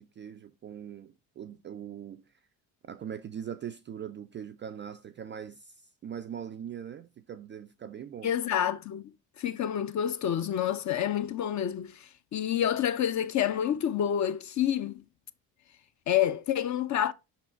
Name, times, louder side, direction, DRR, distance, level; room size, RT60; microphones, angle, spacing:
voice 1, 0.0-2.2 2.8-5.7 6.0-8.3, right 8 dB, 25° right, 0.3 m, -41 dB
voice 2, 8.2-9.1 9.4-15.0 16.1-17.1, left 10 dB, 35° left, 0.6 m, -28 dB
5.5 x 4.0 x 4.3 m
hypercardioid pair, 55°, 50 cm